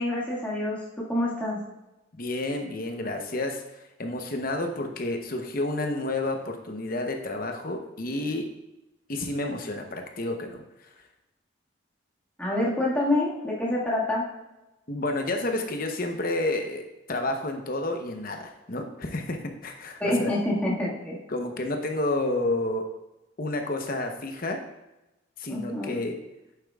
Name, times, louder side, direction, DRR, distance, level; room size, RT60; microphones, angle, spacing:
voice 1, 0.0-1.6 12.4-14.3 20.0-21.2 25.5-26.0, left 1 dB, 10° left, -7 dB, 1.8 m, -27 dB
voice 2, 2.1-8.5 9.1-10.6 14.9-16.8 17.1-20.3 21.3-22.8 23.4-24.6 25.4-26.2, left 2 dB, 45° left, 4 dB, 0.9 m, -30 dB
8.9 x 7.1 x 2.4 m, 0.97 s
head